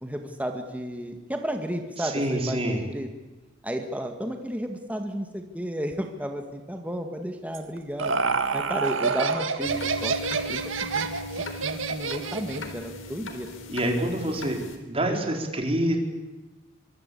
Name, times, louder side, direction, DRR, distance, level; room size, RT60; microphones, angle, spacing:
voice 1, 0.0-3.1 3.6-8.1 8.5-11.1 11.6-13.5, equal, 10° right, 4 dB, 2.0 m, -33 dB
voice 2, 2.0-2.8 13.7-14.6 14.8-16.0, right 1 dB, 30° right, 2 dB, 4.5 m, -26 dB
Laughter, 7.5-12.7, right 5 dB, 85° right, 1.9 m, -28 dB
sound 1, 9.6-14.8, left 1 dB, 85° left, 3.9 m, -38 dB
24.5 x 23.5 x 8.5 m, 1.1 s
head